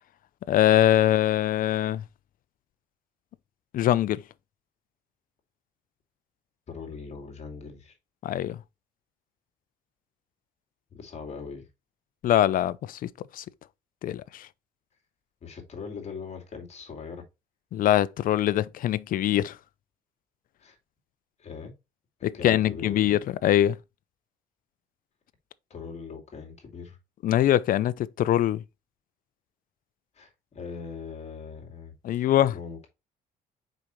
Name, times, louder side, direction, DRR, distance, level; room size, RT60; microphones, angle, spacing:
voice 1, 0.5-2.0 3.7-4.2 8.2-8.6 12.2-13.4 14.0-14.5 17.7-19.6 22.2-23.8 27.2-28.6 32.0-32.5, left 12 dB, 55° left, 0.5 m, -23 dB
voice 2, 6.7-8.0 10.9-11.7 15.4-17.2 20.6-20.8 21.4-21.7 22.3-23.0 25.7-27.0 30.1-32.9, left 5 dB, 40° left, 2.4 m, -40 dB
6.2 x 5.1 x 3.1 m
cardioid pair, 110°, 17 cm